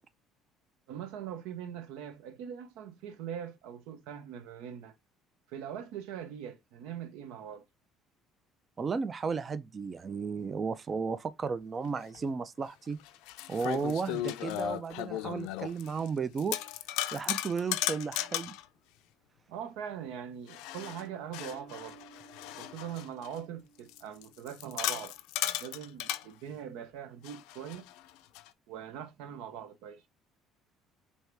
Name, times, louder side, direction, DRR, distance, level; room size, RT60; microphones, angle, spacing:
voice 1, 0.9-4.9 5.5-7.6 19.5-22.1 22.6-25.1 25.6-27.9 28.7-30.0, right 9 dB, 85° right, 0.6 m, -42 dB
voice 2, 8.8-13.0 13.5-16.6 17.1-18.5, right 5 dB, 30° right, 0.3 m, -34 dB
sound 1, 12.1-12.2 13.0-16.1 16.4-18.6 20.5-23.4 23.9-26.2 27.2-28.5, left 14 dB, 90° left, 0.4 m, -36 dB
Bass guitar, 21.5-25.0, right 5 dB, 65° right, 2.0 m, -58 dB
4.5 x 2.7 x 3.3 m
cardioid pair, 125°, 0 cm